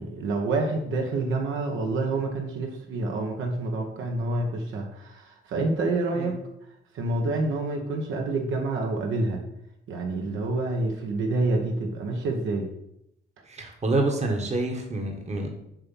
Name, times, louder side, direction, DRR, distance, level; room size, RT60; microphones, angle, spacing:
voice 1, 0.0-6.3 6.9-9.4 9.9-12.7, right 2 dB, 80° right, 2 dB, 1.2 m, -28 dB
voice 2, 13.5-15.5, right 2 dB, 35° right, 3 dB, 1.2 m, -27 dB
7.6 x 3.0 x 5.4 m, 0.79 s
cardioid pair, 90°, 20 cm